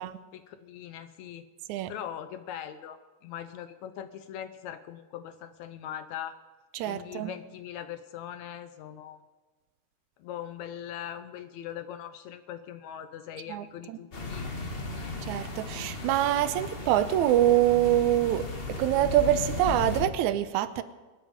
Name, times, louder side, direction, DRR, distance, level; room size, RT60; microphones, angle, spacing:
voice 1, 0.3-1.4 1.9-6.4 6.8-9.2 10.2-14.5, left 10 dB, 75° left, 10 dB, 1.9 m, -41 dB
voice 2, 6.7-7.3 13.5-14.0 15.3-20.8, right 12 dB, 80° right, 11 dB, 2.1 m, -25 dB
sound 1, 14.1-20.1, left 3 dB, 40° left, 0.8 m, -36 dB
26.5 x 9.0 x 5.1 m, 1.3 s
omnidirectional pair, 3.5 m